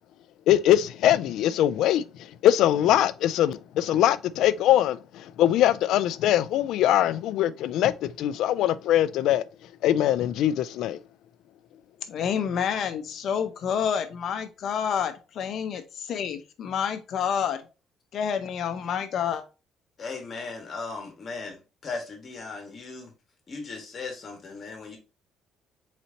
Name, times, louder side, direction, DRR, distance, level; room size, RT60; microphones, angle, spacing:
voice 1, 0.5-2.0 2.4-9.4 9.8-11.0, left 12 dB, 75° left, 0.4 m, -22 dB
voice 2, 12.1-17.7 18.1-19.4, left 8 dB, 50° left, 0.7 m, -28 dB
voice 3, 20.0-23.1 23.5-25.0, left 4 dB, 30° left, 1.6 m, -37 dB
4.4 x 4.1 x 2.7 m
cardioid pair, 155°, 0 cm